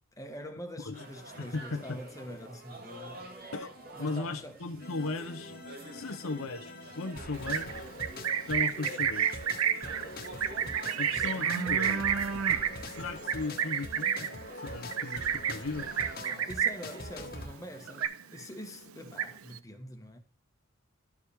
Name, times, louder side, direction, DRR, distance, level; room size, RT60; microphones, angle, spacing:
voice 1, 0.2-3.4 3.9-4.6 11.1-11.4 16.3-20.2, equal, 15° left, 1.3 m, -45 dB
sound 1, 0.9-18.1, right 1 dB, 45° right, 1.7 m, -49 dB
voice 2, 1.4-2.0 3.5-3.7 4.0-5.6 5.9-7.8 8.5-9.3 11.0-12.1 12.9-15.9, left 3 dB, 75° left, 0.8 m, -37 dB
sound 2, 4.8-17.5, left 1 dB, 45° left, 1.4 m, -44 dB
Livestock farm animals working animals, 7.3-17.0 17.3-17.6 17.9-18.6 18.9-19.6, right 8 dB, 80° right, 0.6 m, -30 dB
13.0 x 4.8 x 3.4 m
head